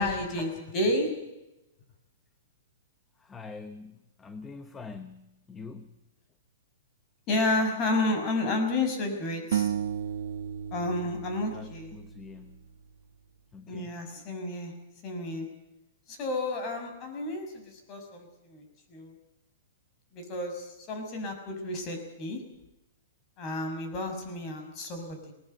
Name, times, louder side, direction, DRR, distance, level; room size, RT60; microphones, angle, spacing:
voice 1, 0.0-1.4 7.3-9.7 10.7-11.9 13.7-15.6 16.1-18.6 18.9-19.2 20.1-22.5 23.4-25.3, left 2 dB, 30° left, 5 dB, 6.3 m, -31 dB
voice 2, 3.2-5.9 11.5-12.6 13.5-14.1, left 4 dB, 15° left, 10 dB, 1.1 m, -45 dB
sound 1, 9.5-12.7, right 9 dB, 75° right, 0.9 m, -33 dB
20.5 x 19.5 x 7.9 m, 0.92 s
hypercardioid pair, 150°, 0 cm